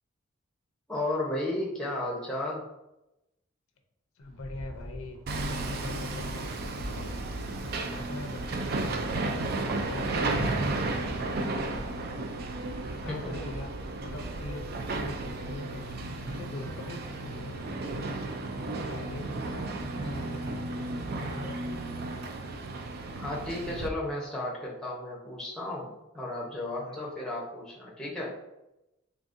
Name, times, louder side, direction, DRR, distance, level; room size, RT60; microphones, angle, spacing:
voice 1, 0.9-2.7 13.1-13.4 23.2-28.4, left 1 dB, 5° left, -3 dB, 0.7 m, -34 dB
voice 2, 4.2-7.1 7.6-9.0 9.4-13.7 14.0-15.9 16.3-18.2 18.7-20.5 21.0-22.1 26.8-27.0, left 2 dB, 85° left, 4 dB, 0.5 m, -42 dB
Rattle, 4.2-12.7, equal, 70° right, 1.2 m, -48 dB
Hammer, 5.3-23.9, right 2 dB, 45° right, 0.3 m, -33 dB
3.9 x 3.4 x 2.5 m, 0.92 s
head